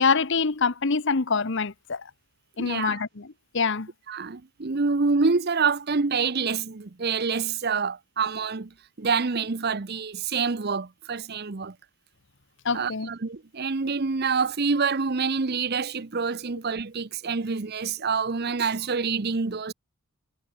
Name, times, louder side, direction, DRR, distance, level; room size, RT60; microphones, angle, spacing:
voice 1, 0.0-2.0 2.6-3.3 3.5-3.9 12.6-13.1, left 4 dB, 55° left, 1.0 m, -25 dB
voice 2, 2.6-3.0 4.1-8.7 9.0-11.7 12.7-19.7, right 5 dB, 45° right, 0.7 m, -27 dB
head